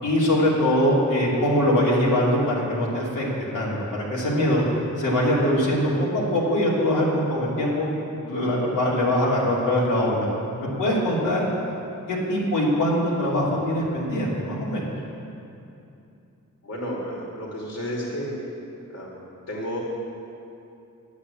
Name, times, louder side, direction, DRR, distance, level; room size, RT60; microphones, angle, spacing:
voice 1, 0.0-3.2 3.5-4.6 5.0-7.9 8.2-10.3 10.6-11.5 12.1-14.8, left 1 dB, 85° left, -6 dB, 2.8 m, -22 dB
voice 2, 16.6-18.3 18.9-19.2 19.5-19.8, equal, 55° left, -4 dB, 2.7 m, -32 dB
9.5 x 8.6 x 8.4 m, 2.7 s
wide cardioid pair, 105°, 32 cm